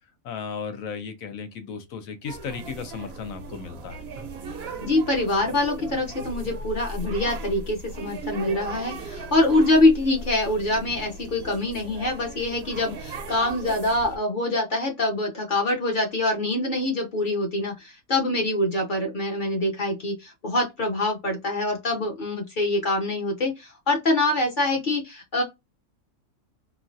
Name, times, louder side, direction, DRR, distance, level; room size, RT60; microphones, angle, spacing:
voice 1, 0.2-4.0, left 6 dB, 90° left, 1.1 m, -35 dB
sound 1, 2.3-14.2, right 2 dB, 60° right, 0.8 m, -37 dB
voice 2, 4.8-25.4, left 2 dB, 45° left, 0.8 m, -24 dB
3.0 x 2.3 x 2.6 m
omnidirectional pair, 1.4 m